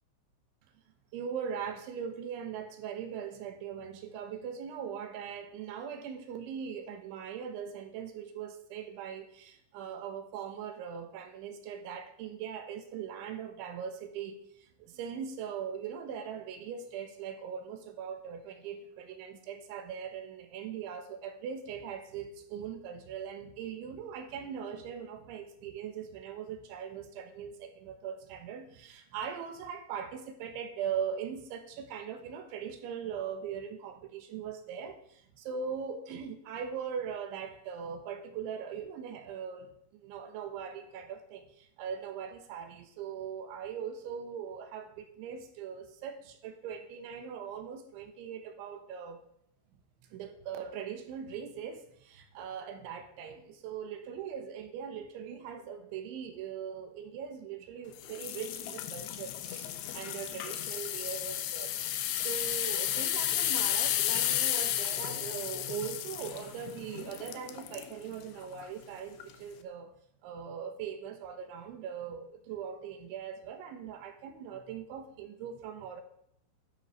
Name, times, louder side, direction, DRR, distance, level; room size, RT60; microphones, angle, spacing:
voice 1, 1.1-49.2 50.1-61.8 62.2-69.9 70.2-76.0, right 7 dB, 75° right, 7 dB, 3.5 m, -40 dB
sound 1, 58.0-67.9 68.4-68.7 69.2-69.3, left 12 dB, 75° left, 2.8 m, -33 dB
12.5 x 11.0 x 5.5 m, 0.72 s
omnidirectional pair, 5.8 m